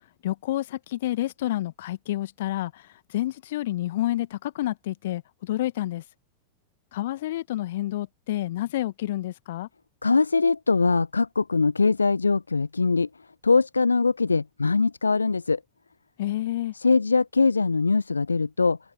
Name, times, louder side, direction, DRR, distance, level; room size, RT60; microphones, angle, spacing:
voice 1, 0.2-2.8 3.1-6.0 6.9-9.7 16.2-16.7, left 14 dB, 55° left, 1.5 m, -29 dB
voice 2, 10.0-13.1 13.4-15.6 16.7-18.8, left 4 dB, 80° left, 0.4 m, -22 dB
open air
figure-of-eight pair, 90°, 0 cm